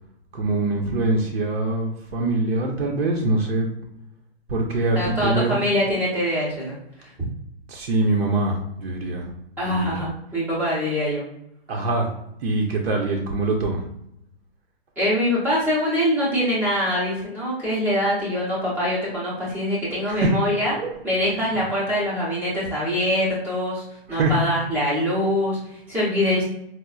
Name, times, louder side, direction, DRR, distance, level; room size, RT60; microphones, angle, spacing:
voice 1, 0.3-3.7 4.5-5.6 7.7-9.3 9.8-10.0 11.7-12.1 12.4-13.8 20.1-20.4 20.8-20.9 21.5-21.7 24.1-24.4, right 2 dB, 75° right, 0 dB, 0.7 m, -23 dB
voice 2, 4.9-7.1 9.6-11.3 15.0-20.7 21.0-26.4, equal, 5° right, -7 dB, 0.5 m, -24 dB
4.3 x 2.0 x 2.3 m, 0.80 s
hypercardioid pair, 160°, 31 cm